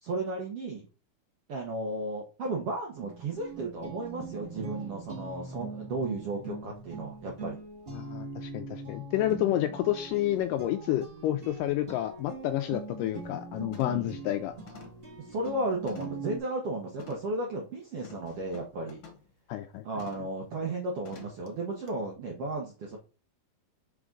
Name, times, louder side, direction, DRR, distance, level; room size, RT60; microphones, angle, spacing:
voice 1, 0.0-0.9 1.5-7.6 13.8-14.1 15.2-19.0 19.8-23.0, right 2 dB, 85° right, 0 dB, 1.3 m, -34 dB
sound 1, 2.9-16.4, right 3 dB, 40° right, 0.8 m, -42 dB
voice 2, 7.9-14.6 19.5-19.9, left 13 dB, 85° left, 8 dB, 1.9 m, -30 dB
sound 2, 11.9-12.0 12.5-12.7 13.1-13.4 13.7-14.1 14.7-16.3 17.0-17.3 18.0-19.3 20.0-20.4 21.0-21.5 21.9-22.0, left 6 dB, 55° left, 1.6 m, -51 dB
5.8 x 4.9 x 3.7 m, 0.35 s
omnidirectional pair, 4.2 m